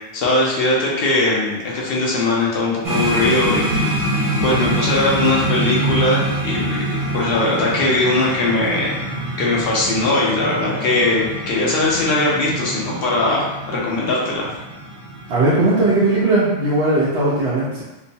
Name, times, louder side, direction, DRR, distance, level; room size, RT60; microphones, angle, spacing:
voice 1, 0.1-3.9 4.4-8.9 9.4-14.5, left 2 dB, 65° left, -4 dB, 0.8 m, -20 dB
sound 1, 2.8-16.2, right 1 dB, 30° right, 0.3 m, -25 dB
voice 2, 15.3-17.8, right 2 dB, 85° right, -8 dB, 1.0 m, -18 dB
2.9 x 2.0 x 2.6 m, 1.1 s
omnidirectional pair, 1.1 m